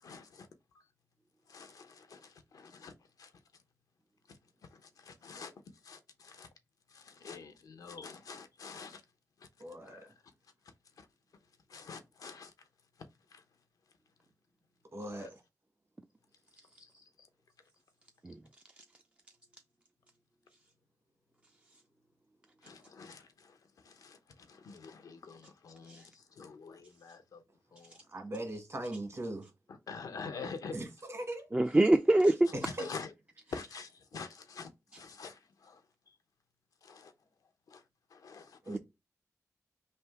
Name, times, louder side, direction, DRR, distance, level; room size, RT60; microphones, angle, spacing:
voice 1, 0.0-0.5 0.7-0.8 1.5-3.3 4.3-4.4 4.7-5.5 5.8-6.5 6.9-9.0 9.4-9.5 9.8-10.1 11.0-11.1 11.7-12.5 13.3-13.4 15.2-15.3 16.8-16.9 17.2-17.3 22.6-27.4 27.7-28.0 29.9-30.8 32.6-33.1 33.5-36.2 36.8-37.1 37.7-37.8 38.1-38.8, left 5 dB, 85° left, 0.6 m, -47 dB
voice 2, 9.6-10.1 14.9-15.4 28.1-29.5 30.7-31.5 32.5-32.9 38.6-38.8, right 1 dB, 50° right, 1.6 m, -40 dB
voice 3, 31.5-32.5, right 1 dB, 20° right, 0.4 m, -24 dB
3.3 x 2.6 x 4.5 m
cardioid pair, 50°, 6 cm